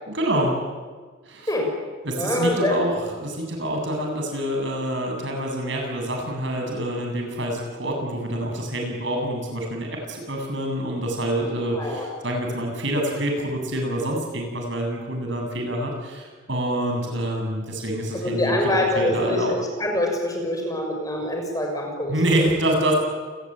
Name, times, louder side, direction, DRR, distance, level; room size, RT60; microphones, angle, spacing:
voice 1, 0.1-0.6 1.3-1.5 2.0-19.5 22.1-22.9, right 1 dB, 65° right, 2 dB, 7.9 m, -26 dB
voice 2, 2.2-2.8 11.7-12.1 18.1-22.5, left 1 dB, 20° left, 2 dB, 6.4 m, -25 dB
29.0 x 20.5 x 9.1 m, 1.5 s
head